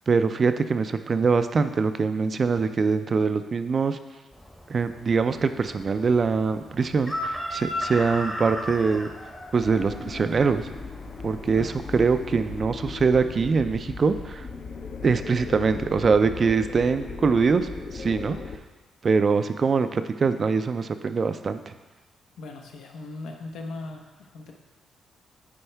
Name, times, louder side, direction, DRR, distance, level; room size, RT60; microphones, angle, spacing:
voice 1, 0.1-4.0 4.7-9.1 9.5-10.7 11.2-14.5 15.0-18.4 19.0-21.7, right 5 dB, 40° right, 10 dB, 0.4 m, -23 dB
Chicken rooster, 4.3-12.6, left 1 dB, 5° left, 0.8 m, -37 dB
sound 1, 9.6-18.6, left 4 dB, 40° left, 0.5 m, -37 dB
voice 2, 22.4-24.5, left 2 dB, 85° left, 2 dB, 0.9 m, -39 dB
9.9 x 4.4 x 3.4 m, 1.2 s
cardioid pair, 120°, 0 cm